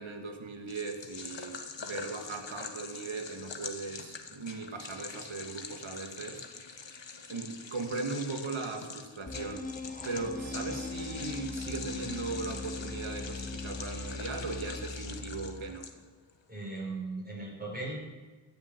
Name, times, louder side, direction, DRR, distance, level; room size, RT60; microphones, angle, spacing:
voice 1, 0.0-6.5 7.3-9.7 10.0-15.9, right 3 dB, 80° right, 4 dB, 1.8 m, -38 dB
sound 1, 0.7-16.3, left 5 dB, 65° left, 1.3 m, -44 dB
sound 2, 9.3-15.8, left 3 dB, 15° left, 0.8 m, -40 dB
voice 2, 16.5-18.0, right 2 dB, 20° right, -4 dB, 4.8 m, -38 dB
14.5 x 7.1 x 8.2 m, 1.3 s
cardioid pair, 50°, 47 cm